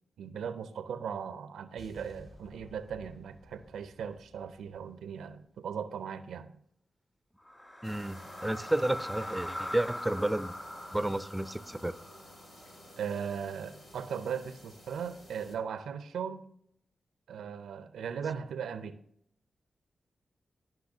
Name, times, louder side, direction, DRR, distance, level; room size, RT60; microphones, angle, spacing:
voice 1, 0.2-6.5 13.0-16.5 17.3-19.0, right 7 dB, 90° right, 0.5 m, -38 dB
sound 1, 1.8-5.9, left 1 dB, 55° left, 2.7 m, -56 dB
sound 2, 7.4-13.6, left 1 dB, 25° left, 2.2 m, -42 dB
sound 3, 7.8-15.6, equal, 80° left, 1.7 m, -54 dB
voice 2, 7.8-10.5 10.9-11.9, right 1 dB, 10° right, 0.5 m, -31 dB
13.5 x 5.7 x 2.7 m
supercardioid pair, 45°, 0 cm